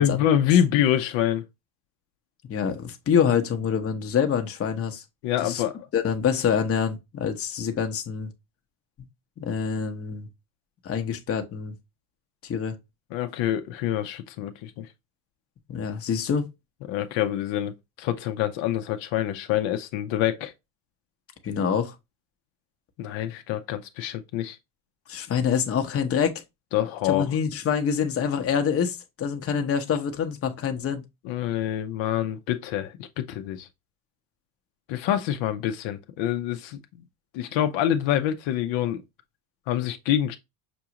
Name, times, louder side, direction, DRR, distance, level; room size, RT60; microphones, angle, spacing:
voice 1, 0.0-1.4 5.2-5.9 13.1-14.9 16.9-20.5 23.0-24.6 26.7-27.3 31.2-33.7 34.9-36.8 37.3-39.0 39.7-40.4, left 11 dB, 65° left, 0.7 m, -26 dB
voice 2, 2.4-5.0 5.4-5.6 5.9-8.3 9.4-10.3 10.8-11.7 12.4-12.8 15.7-16.5 21.4-21.9 25.1-26.4 27.0-31.0, left 7 dB, 30° left, 0.8 m, -26 dB
6.1 x 2.4 x 2.9 m
cardioid pair, 120°, 49 cm